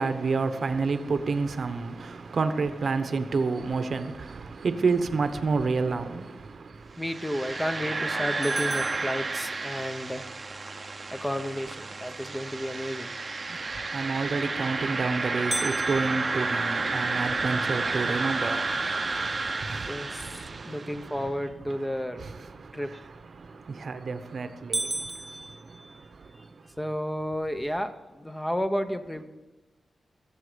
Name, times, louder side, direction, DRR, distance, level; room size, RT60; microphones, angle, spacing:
voice 1, 0.0-7.0 13.5-26.8, right 4 dB, 60° right, 1.0 m, -30 dB
voice 2, 7.0-10.3 11.1-13.1 19.9-20.3 20.6-22.2 22.7-22.9 26.8-29.2, equal, 10° left, 0.9 m, -32 dB
sound 1, 7.0-21.0, right 3 dB, 35° right, 0.8 m, -31 dB
sound 2, 8.4-10.0 15.5-17.7 18.2-18.3 18.8-18.9 19.5-19.9 23.5-23.9 24.3-24.4 24.7-26.5, right 1 dB, 15° right, 0.4 m, -36 dB
21.5 x 7.4 x 5.1 m
wide cardioid pair, 95°, 0 cm